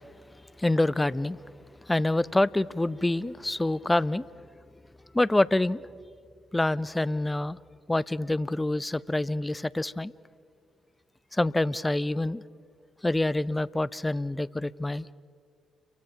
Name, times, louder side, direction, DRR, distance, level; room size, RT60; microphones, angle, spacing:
voice 1, 0.6-1.4 1.9-4.2 5.1-5.8 6.5-7.6 7.9-10.1 11.3-12.4 13.0-15.1, left 1 dB, 15° left, 0.6 m, -26 dB
29.5 x 24.0 x 5.9 m
hypercardioid pair, 50°, 0 cm